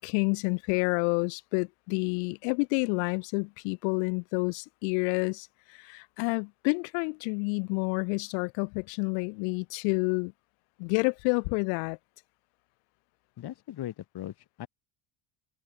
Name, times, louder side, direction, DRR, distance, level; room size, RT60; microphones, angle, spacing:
voice 1, 0.0-10.3 10.8-12.0, left 40 dB or more, 85° left, 5.8 m, -29 dB
voice 2, 13.4-14.7, left 12 dB, 50° left, 2.5 m, -39 dB
supercardioid pair, 95°, 48 cm